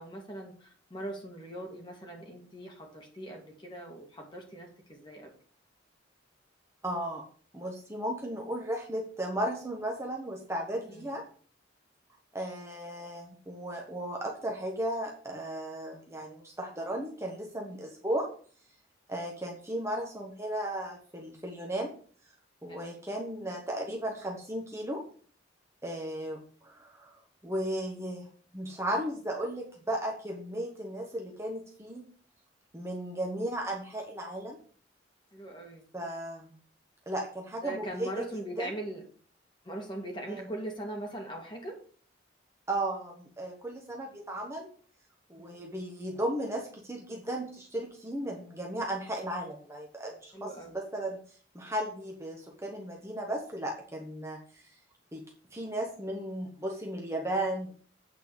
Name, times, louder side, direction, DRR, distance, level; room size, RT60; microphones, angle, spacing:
voice 1, 0.0-5.3 10.9-11.1 22.7-22.9 35.3-35.8 37.6-39.0 39.6-41.8 45.4-45.6 50.3-50.8, right 1 dB, 25° left, 0 dB, 2.4 m, -40 dB
voice 2, 6.8-7.2 7.5-11.2 12.3-18.3 19.1-21.9 22.6-25.0 25.8-28.3 28.5-32.0 32.7-34.6 35.9-36.5 37.1-38.3 38.6-38.7 40.3-40.5 42.7-44.7 45.3-54.7 55.1-55.2 55.5-57.8, right 1 dB, 15° right, -1 dB, 1.4 m, -35 dB
8.7 x 4.4 x 7.0 m, 0.44 s
head